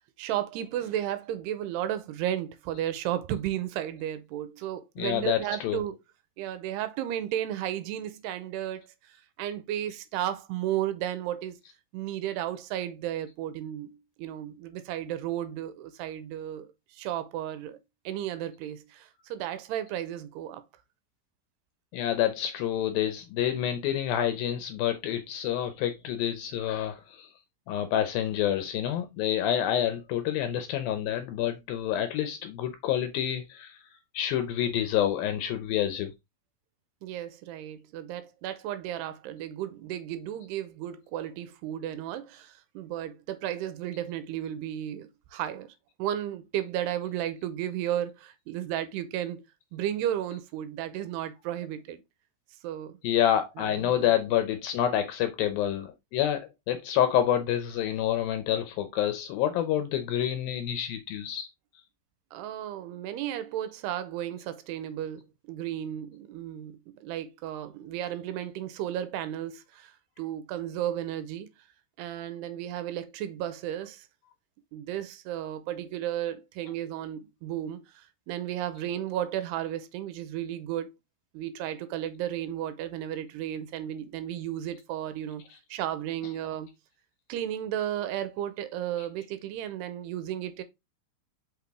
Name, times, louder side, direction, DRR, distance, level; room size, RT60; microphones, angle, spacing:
voice 1, 0.2-6.0 6.4-11.6 11.9-17.8 18.1-20.6 37.0-49.4 49.7-52.0 52.6-53.0 53.6-54.1 62.3-71.5 72.0-74.1 74.7-80.9 81.3-85.4 85.7-86.7 87.3-90.6, right 11 dB, 90° right, 2.7 m, -34 dB
voice 2, 5.0-5.8 21.9-27.3 27.7-33.8 34.1-36.1 53.0-61.5, left 11 dB, 80° left, 2.2 m, -28 dB
5.9 x 5.8 x 3.5 m
omnidirectional pair, 4.8 m